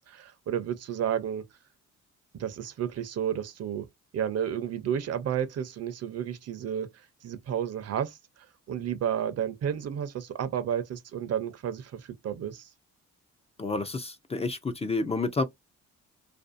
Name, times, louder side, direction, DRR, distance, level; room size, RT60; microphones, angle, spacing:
voice 1, 0.0-1.4 2.3-3.9 4.1-8.2 8.7-12.7, right 9 dB, 55° right, 0.6 m, -31 dB
voice 2, 13.6-15.4, left 3 dB, 20° left, 0.4 m, -29 dB
2.6 x 2.3 x 2.4 m
cardioid pair, 90°, 30 cm